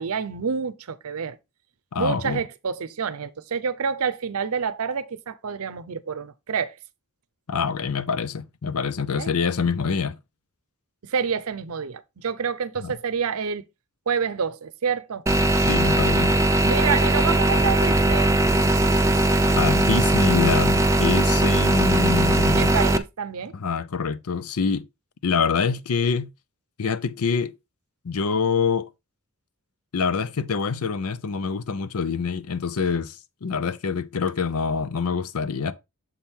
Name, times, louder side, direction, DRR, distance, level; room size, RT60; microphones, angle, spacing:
voice 1, 0.0-1.4 2.0-6.7 9.2-9.3 11.0-13.6 14.1-15.2 16.6-18.4 22.6-23.5, right 6 dB, 75° right, 0.6 m, -28 dB
voice 2, 1.9-2.4 7.5-10.2 12.8-12.9 15.7-16.4 19.5-22.7 23.5-24.8 25.2-26.3 26.8-27.5 28.0-28.9 29.9-35.7, left 5 dB, 75° left, 0.6 m, -25 dB
sound 1, 15.3-23.0, right 1 dB, 15° right, 0.5 m, -19 dB
7.2 x 3.6 x 4.4 m
head